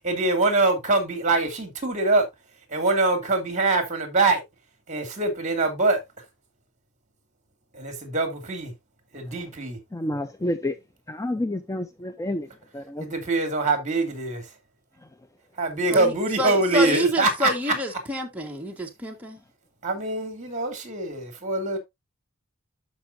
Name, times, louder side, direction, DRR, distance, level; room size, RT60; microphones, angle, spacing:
voice 1, 0.0-2.2 2.7-4.4 4.9-6.0 7.7-8.7 9.1-9.8 13.0-14.4 15.6-17.5 19.8-21.8, right 3 dB, 35° right, 2.6 m, -24 dB
voice 2, 9.9-10.7 11.1-12.5 12.7-13.1, left 1 dB, 15° left, 0.5 m, -29 dB
voice 3, 15.9-19.4, equal, 5° right, 1.4 m, -28 dB
13.0 x 5.4 x 2.6 m
head